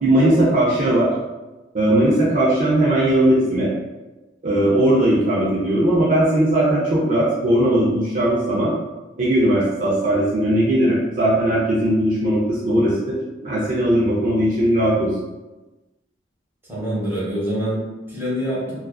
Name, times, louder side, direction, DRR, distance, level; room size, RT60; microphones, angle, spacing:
voice 1, 0.0-1.1 1.7-3.7 4.4-8.7 9.2-15.1, right 1 dB, 45° right, -6 dB, 0.5 m, -18 dB
voice 2, 16.7-18.8, equal, 10° right, -8 dB, 0.8 m, -25 dB
2.4 x 2.3 x 2.2 m, 1.1 s
head